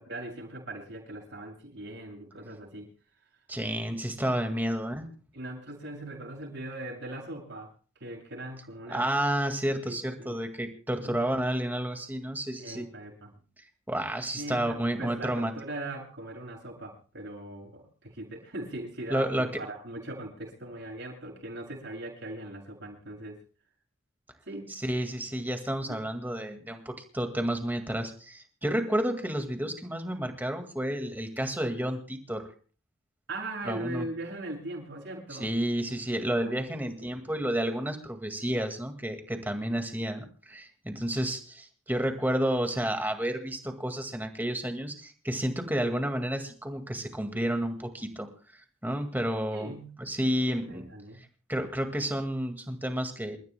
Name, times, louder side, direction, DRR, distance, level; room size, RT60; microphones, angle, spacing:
voice 1, 0.0-2.9 4.5-4.6 5.3-7.7 8.0-9.1 9.8-10.4 10.9-11.2 12.6-13.4 14.3-23.4 24.5-24.7 25.9-26.0 33.3-35.5 36.4-36.6 36.8-37.4 49.5-50.0 50.4-51.2, right 1 dB, 60° right, -1 dB, 7.3 m, -40 dB
voice 2, 3.5-5.0 8.9-12.9 13.9-15.5 19.1-19.5 24.7-32.5 33.7-34.1 35.3-48.3 48.8-49.7 50.0-50.8 51.5-53.4, right 1 dB, 10° right, 5 dB, 1.9 m, -31 dB
28.5 x 14.0 x 2.2 m, 0.39 s
head